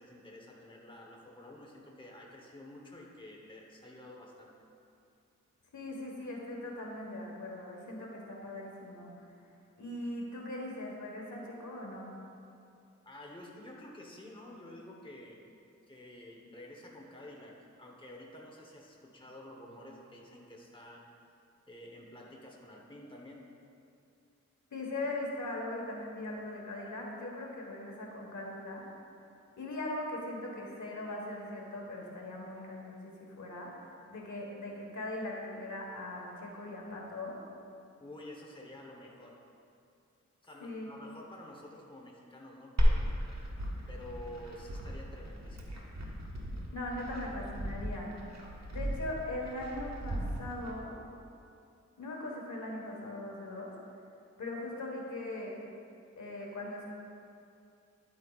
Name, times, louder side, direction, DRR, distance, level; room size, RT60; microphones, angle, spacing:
voice 1, 0.0-4.5 13.0-15.4 15.9-21.1 21.7-23.5 38.0-39.4 40.4-43.0 43.9-45.8, left 1 dB, 15° left, -1 dB, 1.0 m, -50 dB
voice 2, 5.7-9.1 9.8-12.1 24.7-28.9 29.6-33.7 34.1-37.4 40.6-41.0 46.7-48.2 48.7-51.0 52.0-53.7 54.4-55.6 56.2-56.9, left 1 dB, 75° left, -1 dB, 1.4 m, -40 dB
Glass, 42.8-50.7, equal, 65° right, 1.3 m, -34 dB
10.5 x 8.4 x 2.4 m, 2.6 s
wide cardioid pair, 75°, 30 cm